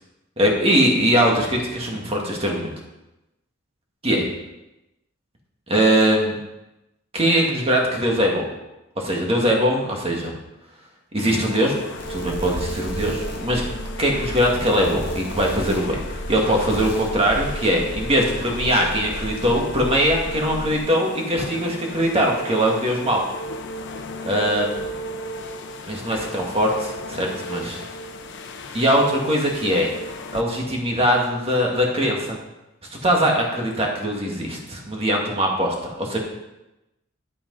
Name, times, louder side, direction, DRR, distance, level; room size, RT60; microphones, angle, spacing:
voice 1, 0.4-2.7 4.0-4.3 5.7-6.3 7.1-8.4 9.0-10.3 11.1-11.7 12.1-13.6 14.0-23.2 24.2-24.9 25.9-26.7 27.1-27.8 28.7-29.9 30.3-32.4 33.0-36.2, equal, 30° right, 0 dB, 2.0 m, -21 dB
sound 1, 11.2-30.4, left 1 dB, 60° left, 0.9 m, -35 dB
sound 2, 12.0-20.8, equal, 60° right, 1.9 m, -33 dB
10.0 x 8.6 x 4.0 m, 0.96 s
head